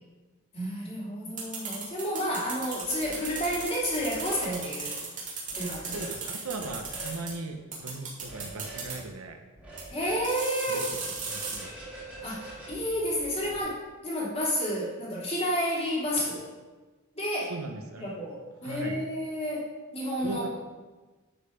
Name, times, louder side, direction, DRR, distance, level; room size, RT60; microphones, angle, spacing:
voice 1, 0.5-5.0 5.5-6.0 9.9-10.9 12.2-16.5 17.1-17.5 18.0-19.7 19.9-20.4, equal, 30° left, -5 dB, 2.8 m, -31 dB
sound 1, 1.4-7.3 7.7-8.9 9.8-9.9 10.2-11.6, right 5 dB, 40° right, 2.7 m, -36 dB
sound 2, 2.8-3.5 3.8-4.5 5.5-6.1 6.5-7.2 8.2-8.9 9.6-10.3 10.9-13.6, right 2 dB, 5° right, 2.5 m, -44 dB
voice 2, 5.9-9.4 10.7-10.8 11.2-11.7 17.5-18.1 18.6-19.0 20.2-20.5, right 2 dB, 85° right, 5 dB, 0.9 m, -38 dB
11.5 x 5.3 x 5.0 m, 1.3 s
head